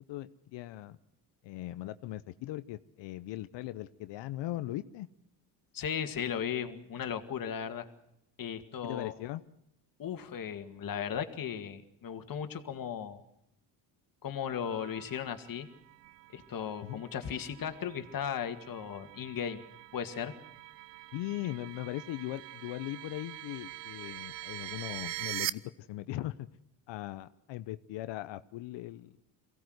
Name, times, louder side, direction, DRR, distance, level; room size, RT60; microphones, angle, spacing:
voice 1, 0.1-1.0 1.4-5.1 8.8-9.4 16.8-17.0 21.1-26.5 26.9-29.2, left 15 dB, 75° left, 13 dB, 0.8 m, -39 dB
voice 2, 5.7-7.9 8.4-9.1 10.0-13.2 14.2-15.7 16.3-19.6 19.9-20.3, left 8 dB, 50° left, 8 dB, 2.1 m, -36 dB
sound 1, 14.6-25.5, right 17 dB, 70° right, 0.8 m, -44 dB
23.0 x 17.0 x 7.9 m, 0.80 s
supercardioid pair, 85°, 44 cm